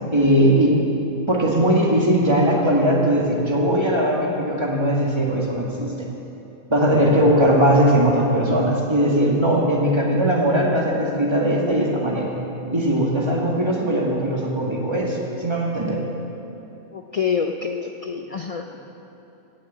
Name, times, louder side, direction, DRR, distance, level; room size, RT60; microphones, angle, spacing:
voice 1, 0.1-0.8 1.3-5.9 6.7-12.3 12.7-16.0, right 1 dB, 20° right, -3 dB, 2.0 m, -19 dB
voice 2, 16.9-18.8, left 6 dB, 60° left, 4 dB, 0.3 m, -26 dB
17.0 x 6.4 x 8.7 m, 2.9 s
omnidirectional pair, 1.3 m